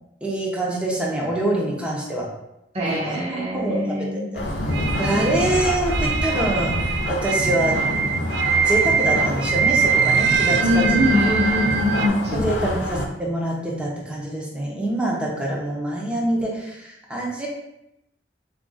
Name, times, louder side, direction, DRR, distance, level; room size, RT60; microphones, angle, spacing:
voice 1, 0.2-2.3 2.8-4.4 4.8-7.8 8.6-11.1 12.3-17.5, right 1 dB, 5° right, -3 dB, 0.7 m, -25 dB
voice 2, 2.7-4.3 10.6-12.8, left 1 dB, 35° right, -4 dB, 0.9 m, -23 dB
sound 1, 4.3-13.0, left 1 dB, 80° left, 0.7 m, -27 dB
sound 2, 4.7-12.1, right 6 dB, 75° right, 0.3 m, -23 dB
3.8 x 2.5 x 3.9 m, 0.86 s
head